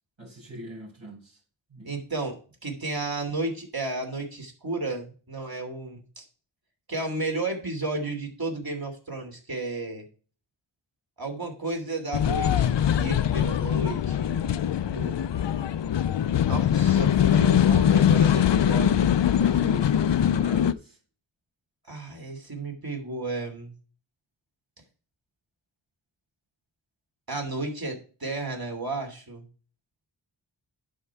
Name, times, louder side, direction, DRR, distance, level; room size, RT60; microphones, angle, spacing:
voice 1, 0.2-1.3 1.7-1.9 19.2-20.9, right 1 dB, 75° right, 5.2 m, -41 dB
voice 2, 1.8-6.2 6.9-10.0 11.2-15.2 16.5-19.1 21.9-23.7 27.3-29.5, right 2 dB, 50° right, 2.9 m, -33 dB
sound 1, 12.1-20.7, left 9 dB, 65° left, 0.5 m, -22 dB
11.0 x 4.6 x 4.7 m
wide cardioid pair, 65°, 47 cm